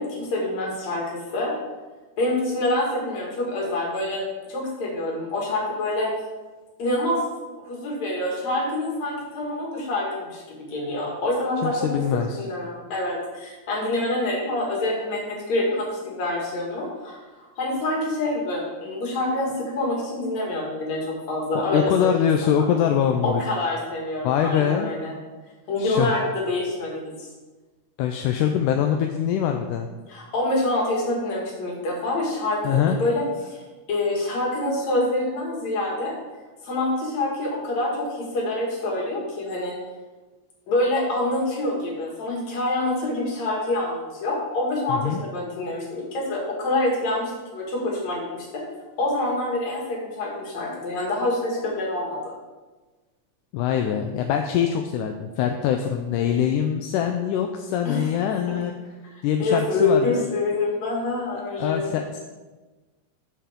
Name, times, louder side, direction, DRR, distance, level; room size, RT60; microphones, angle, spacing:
voice 1, 0.0-1.5 2.2-6.1 6.8-7.2 7.7-11.9 12.3-17.2 17.6-21.0 21.3-22.1 23.2-25.1 25.7-27.3 30.1-36.1 36.6-39.7 40.7-48.6 49.0-52.3 57.8-58.1 58.5-58.6 59.4-61.9, left 2 dB, 60° left, -3 dB, 3.3 m, -26 dB
voice 2, 11.6-12.4 21.7-23.4 24.2-24.9 25.8-26.1 28.0-29.9 32.6-33.0 44.9-45.2 53.5-58.7 59.2-60.2 61.6-62.2, left 9 dB, 85° left, 4 dB, 2.1 m, -23 dB
12.5 x 5.6 x 3.7 m, 1.2 s
omnidirectional pair, 3.6 m